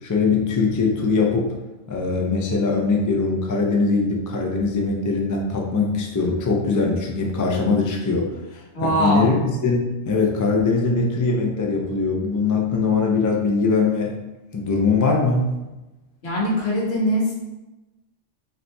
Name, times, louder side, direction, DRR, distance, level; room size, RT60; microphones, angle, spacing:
voice 1, 0.0-1.5 1.9-14.2 14.5-15.5, left 4 dB, 30° left, 0 dB, 0.3 m, -21 dB
voice 2, 8.7-9.3 16.2-17.3, equal, 60° left, -4 dB, 1.5 m, -22 dB
5.1 x 2.9 x 3.4 m, 1.0 s
omnidirectional pair, 1.2 m